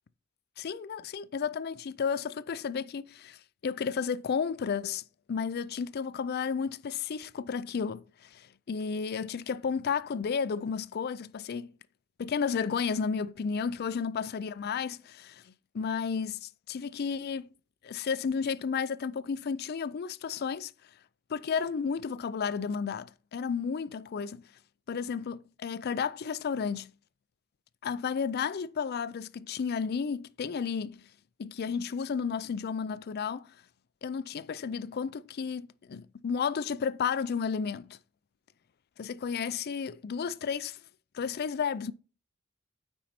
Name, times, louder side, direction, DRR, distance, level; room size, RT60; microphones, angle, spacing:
voice 1, 0.6-5.0 5.3-11.7 12.2-15.4 15.7-17.5 17.8-20.7 21.3-24.4 24.9-26.9 27.8-31.0 31.4-33.5 34.0-38.0 39.0-40.8 41.1-41.9, left 6 dB, 50° left, 0.4 m, -32 dB
9.1 x 4.4 x 4.3 m
head